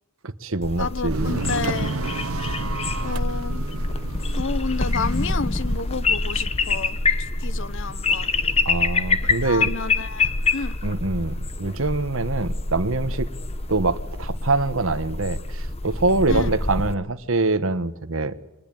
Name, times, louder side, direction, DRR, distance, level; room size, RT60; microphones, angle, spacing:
voice 1, 0.2-1.4 8.6-9.7 10.8-13.3 13.7-18.3, right 3 dB, 65° right, 12 dB, 1.3 m, -24 dB
sound 1, 0.6-16.9, left 3 dB, 30° left, 1.1 m, -26 dB
voice 2, 0.8-2.0 3.0-3.6 4.4-8.3 9.4-10.8 16.3-16.5, left 4 dB, 60° left, 18 dB, 0.8 m, -30 dB
sound 2, 1.1-8.0, right 3 dB, 85° right, 1.0 m, -33 dB
23.5 x 19.5 x 9.0 m, 1.0 s
head